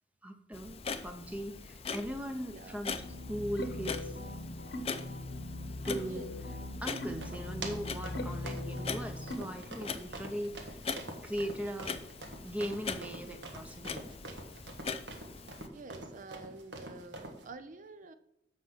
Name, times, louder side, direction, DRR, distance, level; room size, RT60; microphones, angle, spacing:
voice 1, 0.2-0.8 1.0-3.0 3.3-4.2 5.8-6.3 6.8-10.9 11.2-12.0 12.4-14.1, equal, 10° right, 5 dB, 0.7 m, -39 dB
Clock, 0.5-15.7, left 5 dB, 35° left, 0.6 m, -42 dB
sound 1, 2.9-9.4, left 1 dB, 70° left, 1.1 m, -40 dB
sound 2, 6.9-17.4, right 2 dB, 85° right, 1.5 m, -46 dB
voice 2, 15.7-18.1, right 3 dB, 50° right, 11 dB, 0.6 m, -48 dB
7.4 x 5.7 x 6.1 m, 0.82 s
head